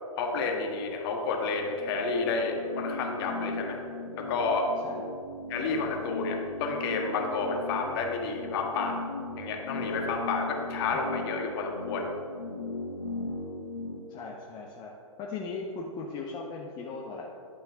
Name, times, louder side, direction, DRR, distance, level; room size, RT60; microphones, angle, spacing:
voice 1, 0.2-3.8 4.1-4.7 5.5-9.1 9.4-12.1, left 4 dB, 45° left, 2 dB, 1.6 m, -30 dB
sound 1, 1.5-14.0, left 3 dB, 80° left, 1.1 m, -38 dB
voice 2, 14.1-14.9 15.2-17.4, left 4 dB, 25° left, -1 dB, 0.9 m, -38 dB
10.5 x 5.5 x 5.7 m, 2.3 s
figure-of-eight pair, 120°, 18 cm